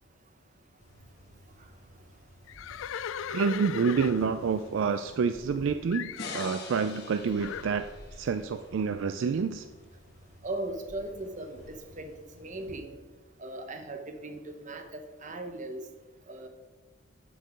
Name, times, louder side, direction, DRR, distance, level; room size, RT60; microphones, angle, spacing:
sound 1, 0.8-12.8, equal, 85° left, 1.7 m, -53 dB
Livestock farm animals working animals, 2.5-5.6 5.9-6.6 7.4-7.8, left 8 dB, 65° left, 0.3 m, -38 dB
voice 1, 3.3-7.9 8.2-9.6, right 5 dB, 65° right, 9 dB, 0.3 m, -28 dB
sound 2, 6.2-9.4, left 3 dB, 50° left, 1.3 m, -44 dB
voice 2, 10.4-12.9 13.4-15.8 16.3-16.5, right 2 dB, 35° right, 6 dB, 0.8 m, -38 dB
6.6 x 6.6 x 5.1 m, 1.2 s
head